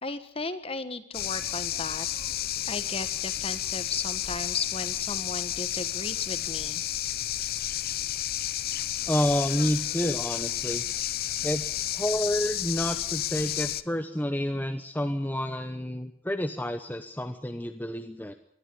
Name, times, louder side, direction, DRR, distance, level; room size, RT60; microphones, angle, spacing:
voice 1, 0.0-2.1 2.7-6.8, left 3 dB, 30° left, 11 dB, 1.4 m, -35 dB
sound 1, 1.1-13.8, left 12 dB, 45° left, 0.7 m, -31 dB
voice 2, 9.1-10.8 11.4-18.3, equal, 10° left, 7 dB, 0.9 m, -29 dB
21.0 x 14.0 x 9.7 m, 0.70 s
head